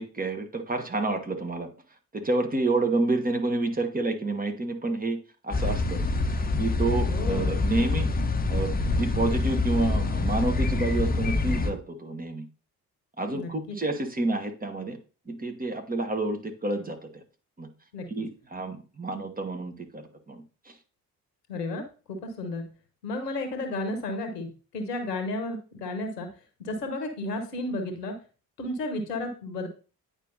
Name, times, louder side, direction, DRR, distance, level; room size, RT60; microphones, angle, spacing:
voice 1, 0.0-1.7 2.1-5.2 5.4-6.0 6.6-8.1 8.5-12.4 13.2-15.0 15.3-17.2 17.6-17.7 18.1-20.7, right 2 dB, 20° right, 6 dB, 1.1 m, -29 dB
sound 1, 5.5-11.7, left 3 dB, 20° left, 0.8 m, -26 dB
voice 2, 7.1-7.5 13.3-13.8 17.9-18.1 21.5-22.7 23.0-24.5 24.7-26.3 26.6-28.2 28.6-29.7, left 2 dB, 80° left, 6 dB, 1.0 m, -32 dB
8.8 x 4.9 x 2.6 m, 0.36 s
figure-of-eight pair, 40°, 47 cm